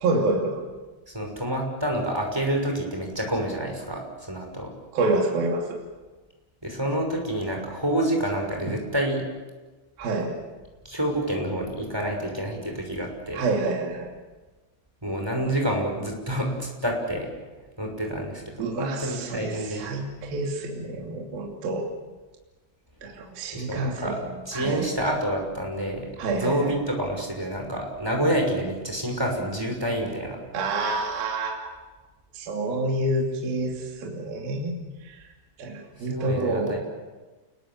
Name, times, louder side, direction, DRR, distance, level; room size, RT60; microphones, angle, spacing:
voice 1, 0.0-0.7 4.9-5.8 8.7-8.8 10.0-10.4 13.3-14.1 18.6-21.9 23.0-24.9 26.2-26.6 30.5-31.7 32.3-35.3 35.6-36.8, right 2 dB, 50° right, 0 dB, 4.2 m, -28 dB
voice 2, 1.1-4.7 6.6-9.2 10.8-13.4 15.0-17.3 17.8-19.9 23.5-24.2 24.5-30.4 36.0-36.8, right 1 dB, 5° right, 1 dB, 5.5 m, -28 dB
29.0 x 21.5 x 7.6 m, 1.3 s
omnidirectional pair, 5.8 m